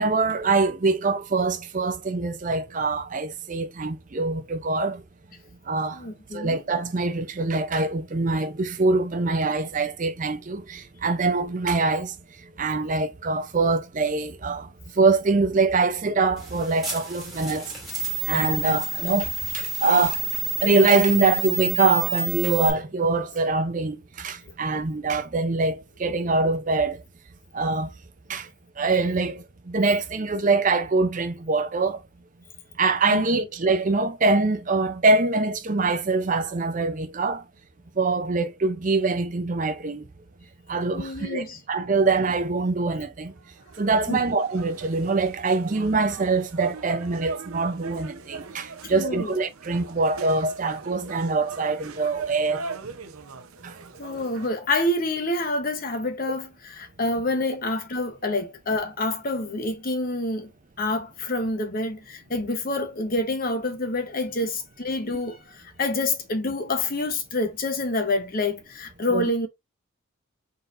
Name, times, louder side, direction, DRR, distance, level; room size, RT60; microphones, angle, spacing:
voice 1, 0.0-5.0 5.7-6.0 6.3-12.1 12.6-14.7 15.0-17.7 18.3-20.2 20.6-27.0 27.5-27.9 28.3-28.5 28.8-32.0 32.8-37.4 38.0-40.0 40.7-43.3 43.8-52.6 53.6-53.7 69.1-69.2, right 3 dB, 35° right, 0.5 m, -24 dB
voice 2, 5.9-6.6 33.1-33.2 40.9-41.6 44.1-44.2 48.9-49.3 54.0-60.5 60.8-69.5, left 2 dB, 40° left, 0.8 m, -27 dB
sound 1, 16.4-22.7, right 4 dB, ahead, 1.5 m, -29 dB
sound 2, 43.4-54.5, right 5 dB, 80° right, 0.7 m, -39 dB
4.0 x 3.9 x 2.5 m
head